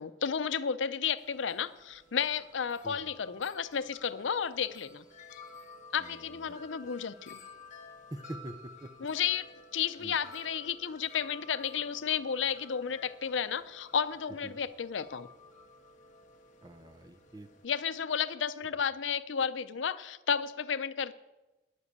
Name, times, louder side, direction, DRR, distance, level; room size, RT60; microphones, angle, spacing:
voice 1, 0.0-5.0 5.9-7.4 9.0-9.5 9.7-15.3 17.6-21.1, left 7 dB, 90° left, 14 dB, 0.6 m, -32 dB
Wind chime, 1.2-17.6, left 2 dB, 40° left, 1.7 m, -53 dB
voice 2, 6.0-6.6 8.1-8.9 10.0-10.2 14.4-14.6 16.6-17.5, right 1 dB, 20° right, 11 dB, 0.6 m, -45 dB
11.0 x 7.5 x 8.2 m, 1.1 s
head